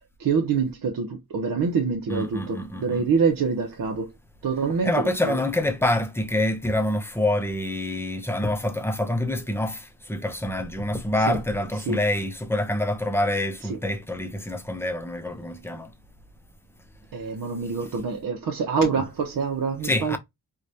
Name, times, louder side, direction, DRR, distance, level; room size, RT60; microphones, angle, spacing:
voice 1, 0.2-4.1 4.4-5.4 11.3-11.4 11.9-12.0 13.7-13.8 17.1-20.2, right 5 dB, 70° right, 0.8 m, -26 dB
voice 2, 2.1-3.0 4.8-15.9 19.8-20.2, left 1 dB, 5° left, 0.5 m, -26 dB
4.7 x 2.3 x 2.7 m
wide cardioid pair, 155°, 35 cm